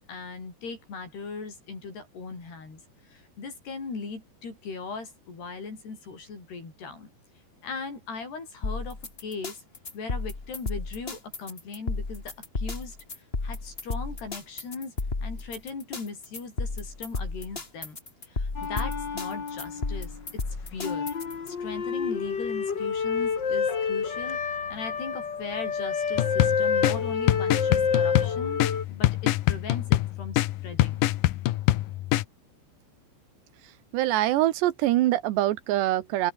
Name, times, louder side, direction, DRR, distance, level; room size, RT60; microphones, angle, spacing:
voice 1, 0.1-2.8 3.1-7.1 7.6-9.6 9.9-13.0 13.4-14.9 15.2-18.0 18.3-20.1 20.7-21.1 21.5-24.4 24.7-31.1, left 4 dB, 65° left, 9.8 m, -39 dB
sound 1, 8.6-21.5, left 3 dB, 25° left, 1.5 m, -33 dB
sound 2, 18.5-20.2 20.8-28.8, left 6 dB, 40° left, 1.8 m, -28 dB
sound 3, 26.2-32.2, left 16 dB, 85° left, 1.9 m, -25 dB
voice 2, 33.9-36.3, right 14 dB, 80° right, 3.2 m, -24 dB
open air
omnidirectional pair, 5.2 m